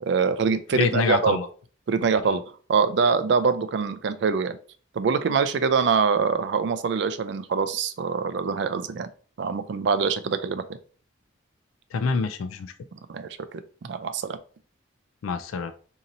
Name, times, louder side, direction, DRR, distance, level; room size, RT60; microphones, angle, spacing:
voice 1, 0.0-1.4 1.9-2.4 2.7-4.6 4.9-9.1 9.4-10.6 13.1-14.4, right 5 dB, 60° right, 11 dB, 0.3 m, -24 dB
voice 2, 0.7-1.5 11.9-12.7 15.2-15.7, left 5 dB, 85° left, 9 dB, 0.3 m, -26 dB
2.8 x 2.6 x 4.0 m, 0.42 s
head